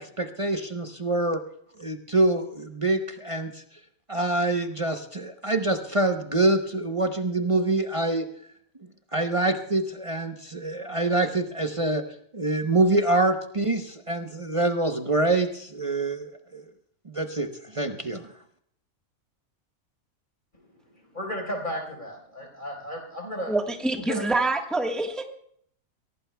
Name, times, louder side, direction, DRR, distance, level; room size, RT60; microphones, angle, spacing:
voice 1, 0.0-1.4 1.8-3.6 4.1-8.3 9.1-12.0 12.3-16.6 17.1-18.2, right 2 dB, 30° right, 4 dB, 0.8 m, -25 dB
voice 2, 20.5-23.5 24.0-24.2, equal, 35° left, 0 dB, 4.5 m, -34 dB
voice 3, 23.5-25.2, right 2 dB, ahead, 3 dB, 1.2 m, -26 dB
23.5 x 17.5 x 2.3 m, 0.64 s
omnidirectional pair, 1.4 m